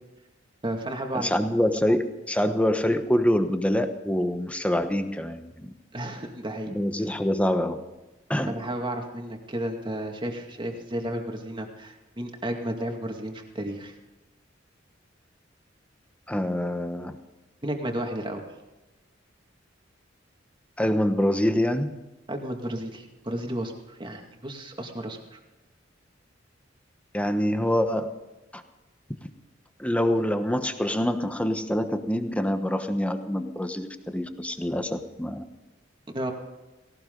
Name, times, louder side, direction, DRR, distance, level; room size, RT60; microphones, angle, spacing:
voice 1, 0.6-1.3 5.9-6.7 8.5-13.9 17.6-18.4 22.3-25.4 36.1-36.3, right 1 dB, 25° right, 3 dB, 2.3 m, -32 dB
voice 2, 1.1-5.7 6.7-7.8 8.3-8.6 16.3-17.2 20.8-21.9 27.1-28.1 28.5-28.6 29.8-35.4, left 1 dB, 5° left, 8 dB, 1.1 m, -25 dB
18.0 x 18.0 x 3.9 m, 1.1 s
head